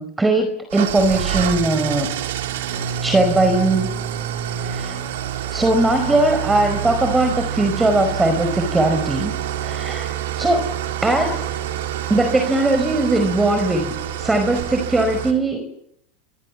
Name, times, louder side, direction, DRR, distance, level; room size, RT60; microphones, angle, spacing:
voice 1, 0.0-2.1 3.0-3.9 4.6-5.0 5.5-9.3 9.6-10.6 11.0-11.5 12.1-15.6, right 2 dB, 10° right, 7 dB, 5.0 m, -19 dB
Engine starting / Idling, 0.7-15.3, right 10 dB, 75° right, 4.5 m, -27 dB
27.0 x 26.0 x 7.5 m, 0.71 s
hypercardioid pair, 95°, 0 cm